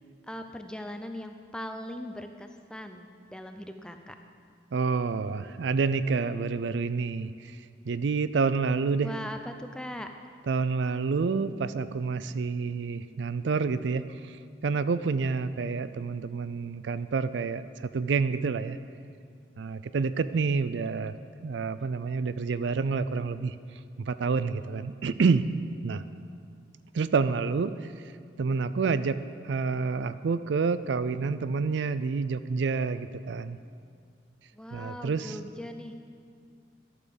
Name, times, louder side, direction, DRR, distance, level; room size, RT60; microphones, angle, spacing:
voice 1, 0.3-4.2 9.0-10.1 34.5-35.9, left 1 dB, 5° left, 6 dB, 0.6 m, -40 dB
voice 2, 4.7-7.6 7.9-9.1 10.5-14.4 14.6-18.8 19.6-21.1 21.4-23.6 24.0-25.5 25.8-26.0 26.9-27.7 28.4-29.2 29.4-33.6 34.7-35.3, right 4 dB, 75° right, 13 dB, 0.4 m, -28 dB
12.0 x 8.6 x 6.9 m, 2.2 s
head